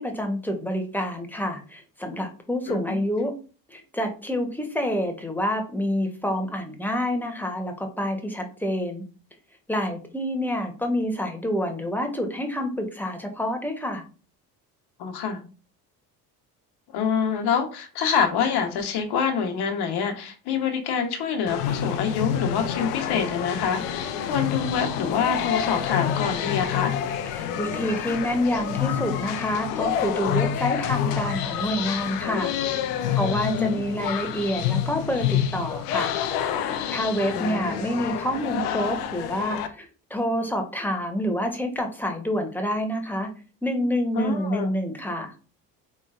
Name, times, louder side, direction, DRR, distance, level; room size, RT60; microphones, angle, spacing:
voice 1, 0.0-3.3 3.7-9.0 9.7-14.0 27.2-32.5 33.1-36.2 36.9-43.3 43.6-45.3, equal, 5° left, 1.0 m, -27 dB
voice 2, 2.7-3.0 15.0-15.4 16.9-27.0 33.4-33.8 37.3-37.8 44.1-44.7, left 6 dB, 55° left, 1.1 m, -26 dB
sound 1, 21.5-39.7, left 9 dB, 75° left, 0.7 m, -28 dB
3.8 x 3.2 x 2.5 m
hypercardioid pair, 60°, 47 cm